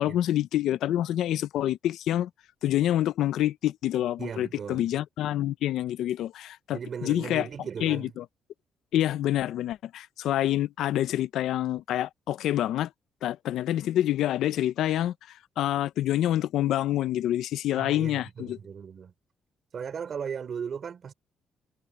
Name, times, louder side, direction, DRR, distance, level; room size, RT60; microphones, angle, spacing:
voice 1, 0.0-2.3 2.6-7.5 7.8-8.2 8.9-12.9 13.2-15.1 15.6-18.6, left 12 dB, 80° left, 0.6 m, -27 dB
voice 2, 4.2-4.9 6.7-8.1 17.8-19.1 19.7-21.1, right 7 dB, 50° right, 3.2 m, -37 dB
cardioid pair, 90°, 0 cm